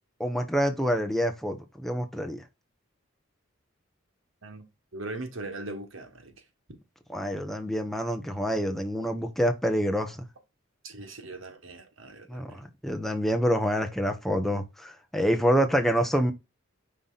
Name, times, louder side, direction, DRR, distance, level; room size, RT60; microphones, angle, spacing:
voice 1, 0.2-2.4 7.1-10.2 12.3-16.3, equal, ahead, 1.0 m, -27 dB
voice 2, 4.9-6.4 10.8-12.6, right 2 dB, 70° right, 1.6 m, -40 dB
5.6 x 3.4 x 5.7 m
head